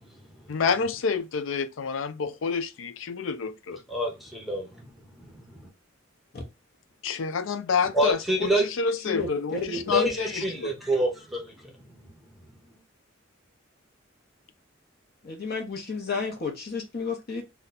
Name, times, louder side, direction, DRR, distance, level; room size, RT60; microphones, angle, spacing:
voice 1, 0.5-3.8 7.0-10.7, left 5 dB, 75° left, 0.4 m, -28 dB
voice 2, 3.9-4.7 5.2-5.3 5.6-5.7 7.9-8.6 9.9-11.5, right 1 dB, ahead, 0.7 m, -26 dB
voice 3, 9.1-10.1 15.2-17.4, left 4 dB, 55° left, 0.8 m, -31 dB
2.8 x 2.2 x 3.7 m
head